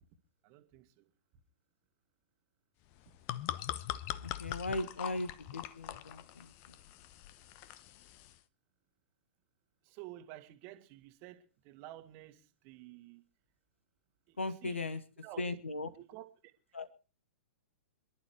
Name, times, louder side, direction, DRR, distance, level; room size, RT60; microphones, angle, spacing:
voice 1, 0.4-1.1 9.8-13.2 14.3-14.8 15.2-15.5 16.0-16.5, right 15 dB, 35° right, 9 dB, 1.8 m, -51 dB
sound 1, 2.9-8.4, left 13 dB, 35° left, 0.9 m, -42 dB
voice 2, 4.2-6.5 14.4-15.0 15.4-15.9 16.7-16.9, left 2 dB, 75° left, 13 dB, 2.0 m, -38 dB
26.5 x 11.5 x 3.1 m, 0.34 s
figure-of-eight pair, 105°, 7 cm